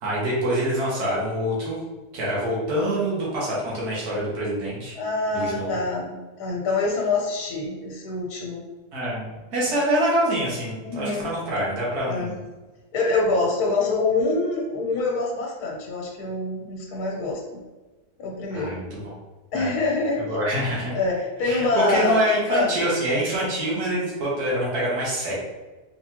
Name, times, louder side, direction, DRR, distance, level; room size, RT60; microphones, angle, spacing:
voice 1, 0.0-1.8 2.1-4.9 5.3-5.7 8.9-12.4 18.5-19.1 19.5-19.7 20.2-20.9 21.4-25.3, right 1 dB, 75° right, -6 dB, 1.6 m, -25 dB
voice 2, 4.9-8.6 10.8-11.3 12.1-12.4 12.9-17.6 18.2-18.8 19.5-20.2 20.9-22.2 22.5-22.7, left 3 dB, 80° left, -1 dB, 1.3 m, -25 dB
3.6 x 3.3 x 2.8 m, 1.2 s
omnidirectional pair, 1.7 m